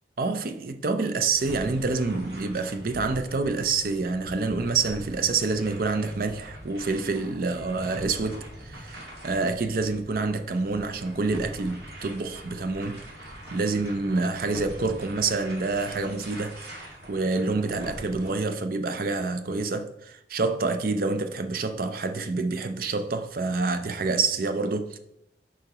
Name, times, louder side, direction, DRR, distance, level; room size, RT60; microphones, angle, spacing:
voice 1, 0.2-13.0 13.5-25.0, right 3 dB, 55° right, 0.5 m, -27 dB
sound 1, 1.3-18.3, equal, 70° right, 1.7 m, -43 dB
6.7 x 4.9 x 2.9 m
head